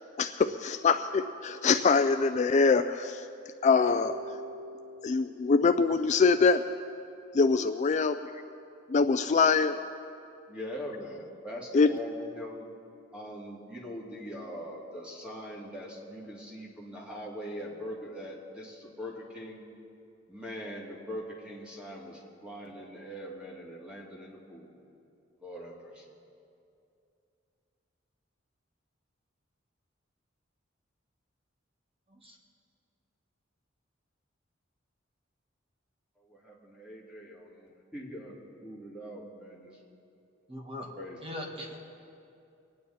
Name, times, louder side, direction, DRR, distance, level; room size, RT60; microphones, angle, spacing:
voice 1, 0.0-3.3 3.6-4.2 5.0-6.6 7.3-8.3 8.9-9.8 11.7-12.0, left 4 dB, 35° left, 9 dB, 0.3 m, -24 dB
sound 1, 3.9-6.7, right 3 dB, 75° right, 1.1 m, -44 dB
voice 2, 10.5-12.7 13.1-19.6 20.3-24.7 25.4-26.0 36.3-39.8 41.0-41.2, equal, 5° right, -4 dB, 2.5 m, -42 dB
voice 3, 40.5-40.9 41.2-41.8, left 1 dB, 30° right, 0 dB, 1.7 m, -40 dB
24.0 x 9.5 x 4.2 m, 2.6 s
head